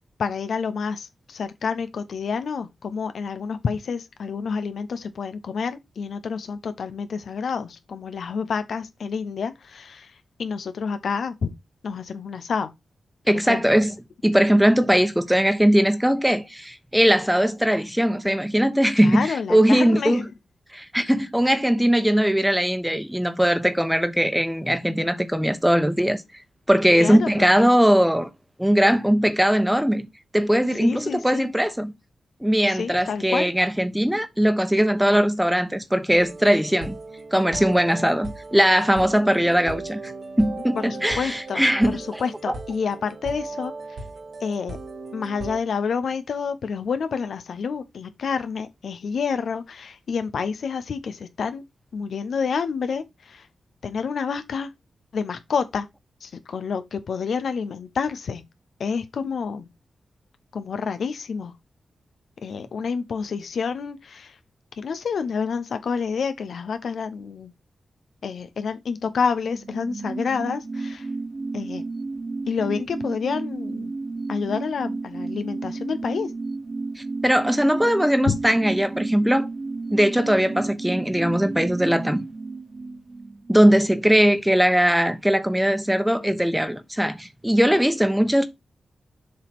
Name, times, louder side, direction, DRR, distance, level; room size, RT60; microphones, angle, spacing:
voice 1, 0.2-11.5 11.8-12.7 13.5-13.6 19.0-20.2 27.0-27.5 30.8-31.5 32.7-33.5 40.8-44.0 44.4-44.8 45.1-51.6 51.9-53.5 53.8-54.7 55.1-55.9 56.2-58.4 58.8-59.7 60.5-61.5 62.4-64.4 64.8-67.5 68.2-71.1 71.5-71.8 72.5-73.9 74.3-76.3 78.3-78.4, left 5 dB, 75° left, 0.8 m, -28 dB
voice 2, 13.3-13.9 14.2-20.3 20.7-26.2 26.7-28.3 28.6-30.1 30.3-31.9 32.4-37.0 37.3-40.1 40.4-42.2 77.0-79.5 79.9-82.2 83.5-88.5, equal, 5° right, 1.1 m, -20 dB
sound 1, 36.1-45.6, right 3 dB, 70° right, 1.7 m, -37 dB
sound 2, 69.1-84.4 84.7-84.8, right 3 dB, 40° right, 0.7 m, -33 dB
7.3 x 3.1 x 6.0 m
cardioid pair, 70°, 0 cm